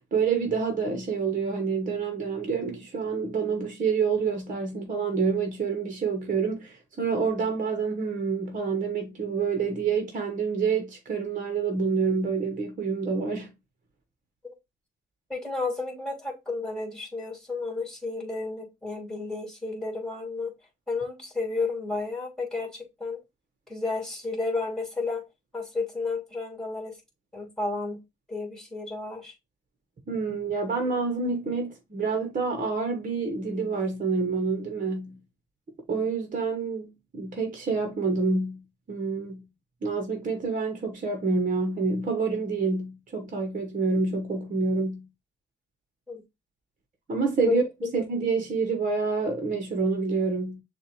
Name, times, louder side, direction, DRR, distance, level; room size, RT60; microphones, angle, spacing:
voice 1, 0.0-13.5 30.1-35.2 35.9-38.6 38.9-39.4 39.8-45.1 47.1-47.6 47.9-50.6, right 4 dB, 40° right, 1.3 m, -27 dB
voice 2, 15.3-20.5 20.9-23.2 23.7-25.2 25.5-27.0 27.3-28.0 28.3-29.3 46.1-46.2 47.4-47.6, left 3 dB, 5° left, 2.7 m, -32 dB
6.5 x 2.6 x 3.1 m
cardioid pair, 90°, 20 cm